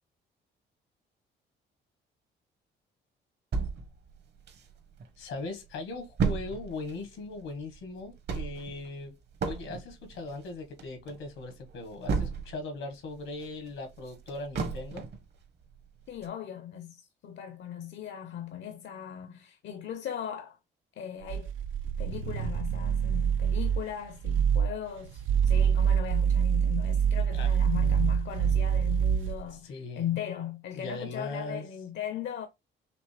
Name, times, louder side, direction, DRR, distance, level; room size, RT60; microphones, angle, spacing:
sound 1, 3.5-5.1 5.5-5.6 5.7-12.7 13.1-15.3 15.7-15.8 16.2-16.3, right 5 dB, 60° right, 1.1 m, -34 dB
voice 1, 5.2-9.1 9.5-15.1 27.3-27.5 29.5-30.0 30.7-31.7, left 3 dB, 85° left, 1.4 m, -39 dB
voice 2, 16.1-20.6 21.0-21.5 22.0-32.5, left 10 dB, 65° left, 0.7 m, -38 dB
sound 2, 21.2-23.9 24.2-24.7 25.2-29.4, right 8 dB, 85° right, 0.5 m, -26 dB
5.2 x 2.9 x 3.3 m
cardioid pair, 90°, 20 cm